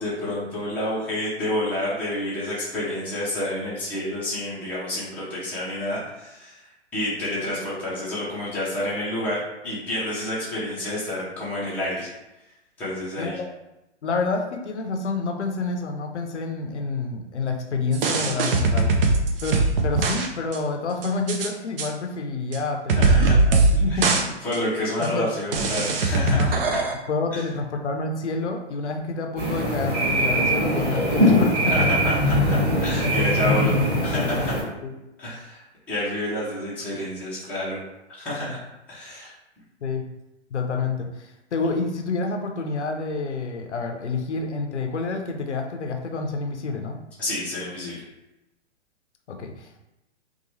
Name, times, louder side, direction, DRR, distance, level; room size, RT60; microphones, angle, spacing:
voice 1, 0.0-12.1 12.8-13.4 23.0-23.4 23.9-24.0 24.4-26.8 27.3-27.4 31.7-33.8 34.0-34.5 35.2-35.6 35.9-37.8 38.2-38.6 38.9-39.3 47.2-48.0, left 1 dB, 5° left, -9 dB, 0.5 m, -29 dB
voice 2, 13.2-13.5 14.0-18.9 19.4-24.1 24.5-24.6 25.0-25.3 26.2-26.5 27.1-32.0 33.0-33.6 34.0-34.5 34.8-34.9 39.8-40.1 40.5-47.0 49.3-49.8, left 3 dB, 75° left, 3 dB, 0.5 m, -28 dB
sound 1, 17.9-20.3 20.5-20.6 21.0-21.5 21.8-21.9 22.5-22.6 22.9-23.8 24.0-24.2 24.5-24.6 25.0-25.1 25.5-26.9, right 3 dB, 50° right, 0.5 m, -20 dB
sound 2, 29.4-34.6, equal, 25° right, 1.2 m, -21 dB
2.8 x 2.2 x 2.8 m, 0.95 s
figure-of-eight pair, 120°, 35 cm